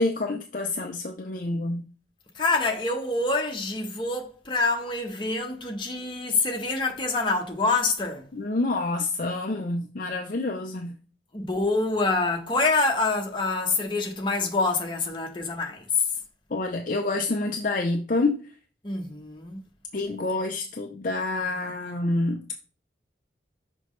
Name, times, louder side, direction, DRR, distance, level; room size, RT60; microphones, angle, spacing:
voice 1, 0.0-1.8 8.3-11.0 16.5-18.5 19.9-22.4, left 2 dB, 45° left, 0.5 m, -27 dB
voice 2, 2.3-8.3 11.3-16.1 18.8-19.6, left 3 dB, 25° left, 1.1 m, -26 dB
6.0 x 5.1 x 3.2 m
head